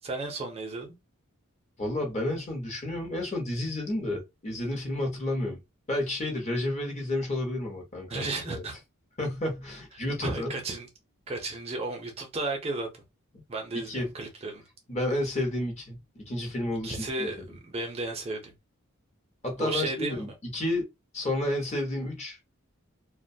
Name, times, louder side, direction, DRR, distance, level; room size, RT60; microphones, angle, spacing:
voice 1, 0.0-1.0 8.1-8.7 10.2-10.9 11.3-12.9 13.5-14.6 16.8-17.4 17.6-18.5 19.6-20.2, right 2 dB, 30° right, 0.5 m, -33 dB
voice 2, 1.8-5.6 5.9-8.6 9.2-10.5 13.8-14.1 14.9-17.6 19.4-20.8 21.1-22.4, left 1 dB, 30° left, 0.8 m, -31 dB
2.4 x 2.2 x 2.6 m
head